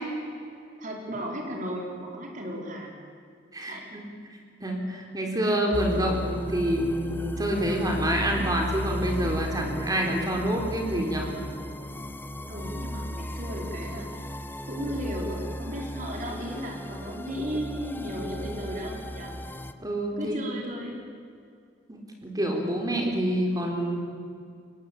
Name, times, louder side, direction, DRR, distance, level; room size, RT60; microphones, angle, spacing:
voice 1, 0.8-3.1 3.7-3.9 12.5-14.2 14.7-19.3 20.2-21.0, equal, 45° right, 0 dB, 4.4 m, -35 dB
voice 2, 3.5-4.1 4.6-11.3 19.8-20.5 21.9-24.0, right 1 dB, 20° right, 1 dB, 4.1 m, -27 dB
sound 1, 5.7-19.7, equal, 10° left, 0.9 m, -35 dB
23.0 x 20.0 x 8.6 m, 2.3 s
head